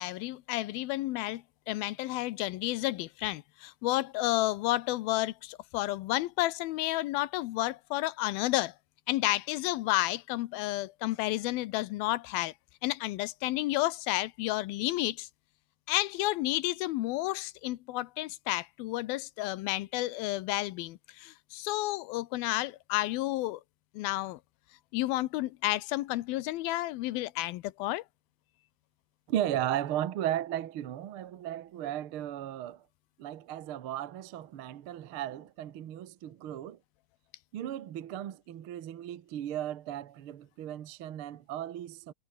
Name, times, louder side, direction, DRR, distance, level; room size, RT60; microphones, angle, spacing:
voice 1, 0.0-8.7 9.1-12.5 12.8-15.3 15.9-23.6 23.9-24.4 24.9-28.0, left 17 dB, 85° left, 2.6 m, -31 dB
voice 2, 29.3-32.8 33.2-36.8 37.5-42.1, right 11 dB, 70° right, 1.3 m, -35 dB
omnidirectional pair, 4.3 m